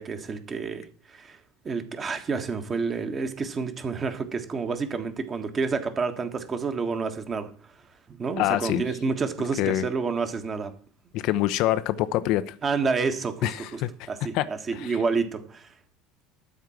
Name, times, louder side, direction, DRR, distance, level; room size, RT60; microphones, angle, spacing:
voice 1, 0.0-1.4 1.6-7.5 8.1-10.7 12.6-13.8 14.1-15.7, right 4 dB, 30° right, 8 dB, 1.4 m, -29 dB
voice 2, 8.4-8.8 9.6-9.8 11.1-12.5 13.4-14.1 14.3-14.5 14.7-14.9, left 14 dB, 55° left, 13 dB, 0.5 m, -25 dB
12.5 x 4.6 x 7.4 m, 0.42 s
figure-of-eight pair, 65°, 0 cm